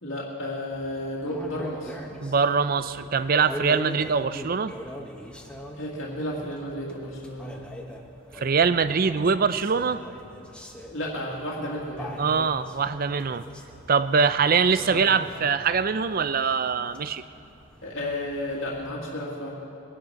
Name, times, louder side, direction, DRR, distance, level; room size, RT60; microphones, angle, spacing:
voice 1, 0.0-1.9 5.7-7.6 10.9-12.2 14.8-15.0 17.8-19.5, left 1 dB, 60° left, -5 dB, 2.2 m, -32 dB
sound 1, 0.7-18.9, equal, 5° left, 0.9 m, -43 dB
voice 2, 2.2-4.7 8.3-10.0 12.2-13.4 13.9-17.2, right 5 dB, 40° right, 13 dB, 0.4 m, -23 dB
22.0 x 9.8 x 5.8 m, 2.8 s
head